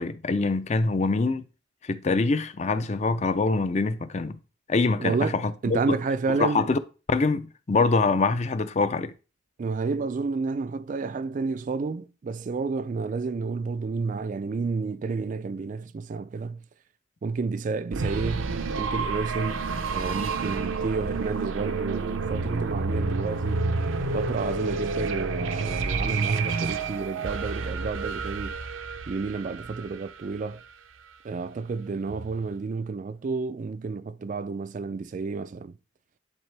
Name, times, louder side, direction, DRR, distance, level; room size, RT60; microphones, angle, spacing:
voice 1, 0.0-1.5 1.8-4.4 4.7-6.0 6.3-6.8 7.1-9.1, left 3 dB, 35° left, 0.5 m, -24 dB
voice 2, 5.0-6.7 9.6-16.6 17.2-23.6 24.1-28.6 29.1-30.6 31.2-35.7, right 4 dB, 40° right, 0.3 m, -30 dB
sound 1, 17.9-30.6, right 4 dB, 80° right, 0.6 m, -29 dB
10.5 x 3.9 x 3.3 m
head